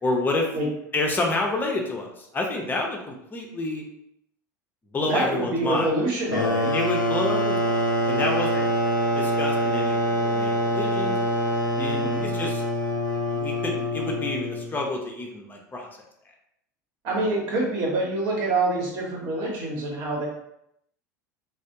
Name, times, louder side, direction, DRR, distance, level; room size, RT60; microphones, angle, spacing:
voice 1, 0.0-0.5 0.9-3.8 4.9-5.9 6.7-8.7 9.1-11.2 11.8-12.6 13.3-15.9, left 2 dB, 20° left, 0 dB, 0.7 m, -29 dB
voice 2, 5.0-6.7 8.5-8.6 11.8-12.3 17.0-20.3, right 2 dB, 50° right, -2 dB, 1.1 m, -26 dB
sound 1, 6.3-14.8, equal, 85° left, 0.4 m, -25 dB
3.2 x 2.0 x 2.8 m, 0.77 s
figure-of-eight pair, 75°, 10 cm